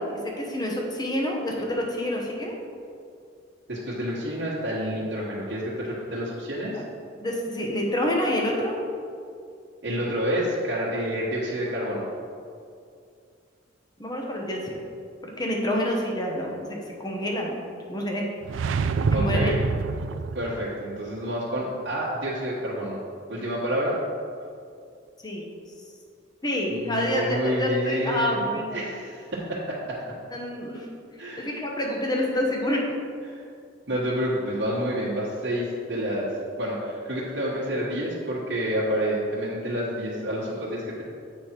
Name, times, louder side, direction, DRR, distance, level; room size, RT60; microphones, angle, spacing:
voice 1, 0.0-2.6 7.2-8.8 14.0-14.8 15.2-17.5 17.9-18.3 19.1-19.5 25.2-25.5 26.4-28.9 30.3-30.9 31.4-33.0, left 1 dB, 20° left, -1 dB, 1.1 m, -28 dB
voice 2, 3.7-6.8 9.8-12.0 19.1-19.6 20.3-23.0 23.3-24.0 26.7-30.0 31.2-31.5 33.3-33.4 33.9-36.3 36.6-41.0, equal, 65° right, -8 dB, 1.4 m, -29 dB
sound 1, 18.4-20.7, right 4 dB, 85° right, 0.3 m, -26 dB
7.8 x 5.2 x 4.5 m, 2.4 s
head